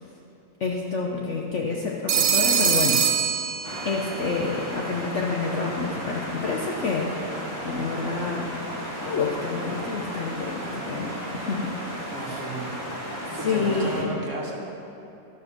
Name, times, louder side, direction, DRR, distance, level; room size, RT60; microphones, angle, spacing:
voice 1, 0.6-3.0 3.8-7.1 7.6-8.5 9.0-12.4 13.4-14.2, left 4 dB, 55° left, -1 dB, 0.8 m, -28 dB
Telephone, 2.1-4.2, right 7 dB, 75° right, 0.6 m, -23 dB
sound 1, 3.6-14.0, equal, 15° left, 1.6 m, -34 dB
voice 2, 12.1-12.8 13.3-14.7, right 1 dB, 45° right, -2 dB, 1.5 m, -33 dB
12.5 x 5.3 x 5.9 m, 2.8 s
omnidirectional pair, 1.9 m